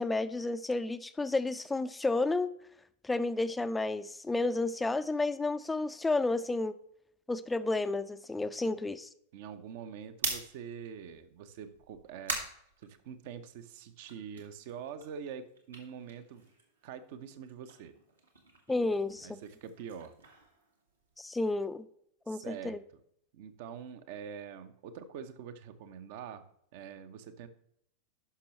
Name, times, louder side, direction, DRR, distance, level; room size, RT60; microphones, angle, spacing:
voice 1, 0.0-2.5 3.0-6.8 7.3-9.1 18.7-19.4 21.2-21.9 22.3-22.8, left 2 dB, 10° left, 12 dB, 0.5 m, -31 dB
voice 2, 9.3-12.4 12.8-16.5 16.8-17.9 19.2-20.2 22.3-22.8 23.3-26.4 26.7-27.5, right 7 dB, 50° right, 11 dB, 0.8 m, -45 dB
sound 1, 10.0-13.5 13.9-16.9 17.2-21.3, right 3 dB, 75° right, 1.8 m, -43 dB
11.5 x 6.1 x 3.1 m, 0.71 s
figure-of-eight pair, 90°, 0 cm